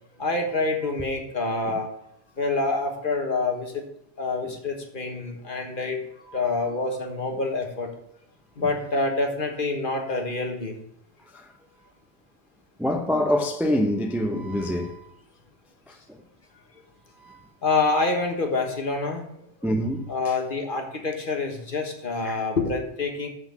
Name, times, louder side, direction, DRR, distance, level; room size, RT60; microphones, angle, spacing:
voice 1, 0.2-1.9 2.4-3.8 4.2-6.0 6.3-7.9 8.6-10.8 17.6-19.3 20.1-23.3, left 3 dB, 45° left, 1.4 m, -26 dB
voice 2, 12.8-15.1 15.9-16.2 17.2-17.4 19.6-20.1 22.2-22.4, left 1 dB, ahead, 0.5 m, -26 dB
6.4 x 5.9 x 7.0 m
omnidirectional pair, 1.2 m